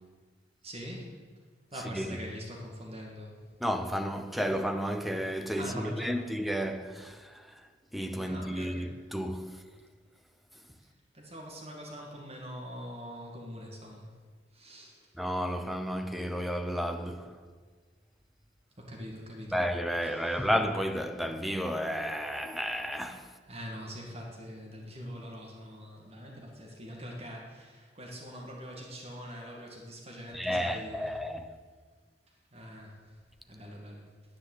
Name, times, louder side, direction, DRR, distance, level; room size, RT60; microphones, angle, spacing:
voice 1, 0.6-1.1 1.7-3.4 5.6-6.3 8.3-8.9 11.1-14.1 14.5-15.0 18.9-19.6 20.0-20.5 23.5-31.1 32.5-33.0 33.5-34.1, equal, 35° right, 2.1 m, -43 dB
voice 2, 3.6-7.2 7.9-9.6 15.2-17.3 19.5-23.3 30.3-31.5, equal, ahead, 0.8 m, -32 dB
10.0 x 9.9 x 7.9 m
head